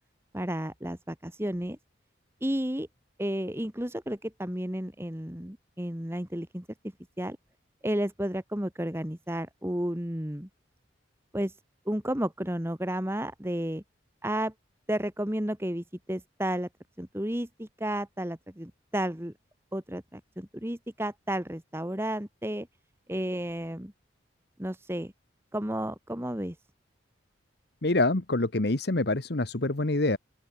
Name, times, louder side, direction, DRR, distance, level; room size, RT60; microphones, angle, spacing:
voice 1, 0.3-1.8 2.4-2.9 3.2-6.6 7.2-7.4 7.8-10.5 11.3-11.5 11.8-13.8 14.2-14.5 14.9-16.7 17.0-19.3 19.7-22.7 23.1-23.9 24.6-25.1 25.5-26.6, right 1 dB, 15° right, 1.8 m, -32 dB
voice 2, 27.8-30.2, left 2 dB, 55° left, 1.2 m, -26 dB
open air
head